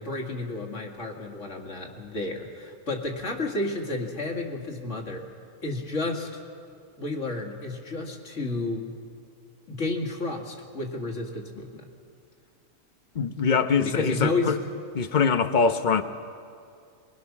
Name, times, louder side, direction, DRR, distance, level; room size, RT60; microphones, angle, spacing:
voice 1, 0.0-5.3 5.6-6.4 7.0-8.9 9.7-11.9 13.8-14.6, left 2 dB, 65° left, 2.5 m, -31 dB
voice 2, 13.1-14.6 14.9-16.0, left 5 dB, 40° left, 0.9 m, -23 dB
24.0 x 22.0 x 6.1 m
omnidirectional pair, 1.4 m